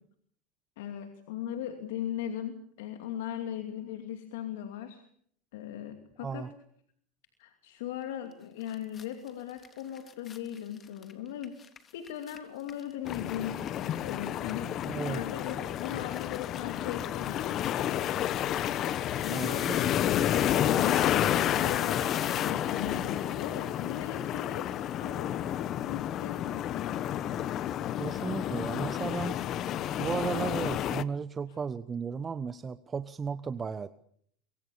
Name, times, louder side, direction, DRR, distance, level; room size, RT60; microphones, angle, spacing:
voice 1, 0.8-5.0 5.5-6.5 7.4-11.6 11.9-18.3 19.2-22.1 22.4-25.3 25.9-26.9, left 10 dB, 80° left, 7 dB, 2.5 m, -39 dB
voice 2, 6.2-6.5 14.9-15.2 19.3-19.8 27.4-27.6 28.0-29.4 30.0-33.9, right 5 dB, 25° right, 13 dB, 1.1 m, -35 dB
sound 1, 8.3-8.4 8.6-14.1 14.4-22.5, left 6 dB, 30° left, 3.3 m, -44 dB
sound 2, 13.1-31.0, left 11 dB, 50° left, 1.2 m, -30 dB
24.5 x 24.0 x 7.1 m, 0.66 s
hypercardioid pair, 95°, 0 cm